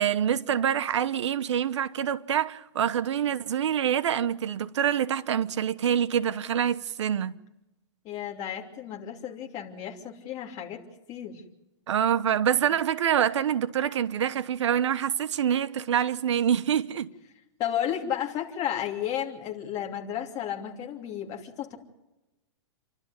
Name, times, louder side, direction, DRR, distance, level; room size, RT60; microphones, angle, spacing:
voice 1, 0.0-7.4 11.9-17.1, right 9 dB, 70° right, 1.1 m, -26 dB
voice 2, 8.0-10.8 11.1-11.4 17.6-21.8, left 10 dB, 25° left, 3.0 m, -33 dB
29.0 x 12.5 x 9.7 m
supercardioid pair, 170°, 15 cm